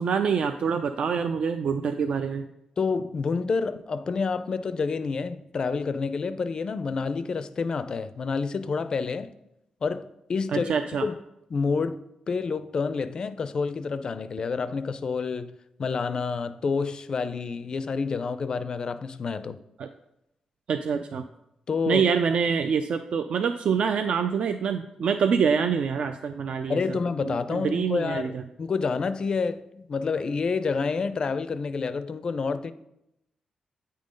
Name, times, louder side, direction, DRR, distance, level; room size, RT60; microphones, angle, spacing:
voice 1, 0.0-2.4 10.5-11.0 19.8-19.9 20.7-21.2 21.9-27.0 27.2-28.4, right 6 dB, 65° right, 0.3 m, -26 dB
voice 2, 2.8-9.3 9.8-10.7 11.0-11.1 11.5-12.0 12.3-15.5 15.8-19.6 21.7-22.1 26.7-32.7, left 4 dB, 40° left, 0.4 m, -28 dB
8.6 x 3.7 x 5.1 m
wide cardioid pair, 140°, 2 cm